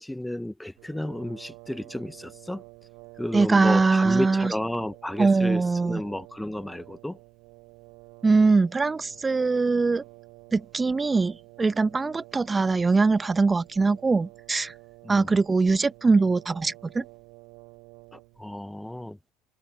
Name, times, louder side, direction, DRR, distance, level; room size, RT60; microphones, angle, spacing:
voice 1, 0.0-2.6 3.2-7.2 15.0-15.4 18.1-19.2, left 1 dB, 5° left, 0.9 m, -32 dB
Brass instrument, 0.8-18.6, right 30 dB, 65° right, 4.4 m, -50 dB
voice 2, 3.3-4.6 5.2-6.0 8.2-10.0 10.5-14.7 15.1-17.0, right 4 dB, 20° right, 1.2 m, -22 dB
hypercardioid pair, 65°, 0 cm